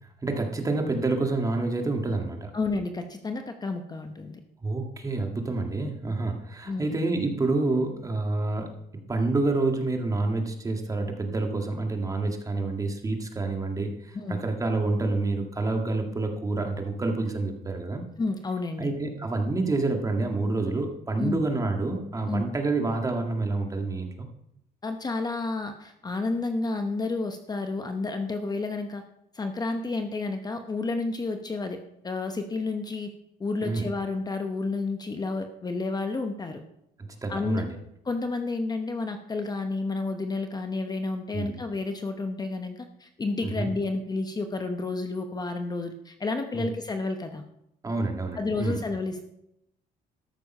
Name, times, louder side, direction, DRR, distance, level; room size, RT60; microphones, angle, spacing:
voice 1, 0.2-2.5 4.6-8.7 9.1-18.0 18.8-24.3 33.6-33.9 37.0-37.8 41.3-41.6 43.4-43.7 46.5-46.7 47.8-48.8, right 2 dB, 20° right, 3 dB, 1.9 m, -28 dB
voice 2, 2.5-4.4 6.7-7.0 14.1-14.4 18.2-18.9 21.2-21.4 22.3-22.4 24.8-29.0 29.3-31.8 32.0-33.1 33.4-36.6 37.3-37.6 38.1-47.4 48.4-49.2, left 3 dB, 25° left, 6 dB, 1.0 m, -30 dB
13.5 x 6.7 x 5.5 m, 0.79 s
cardioid pair, 110°, 17 cm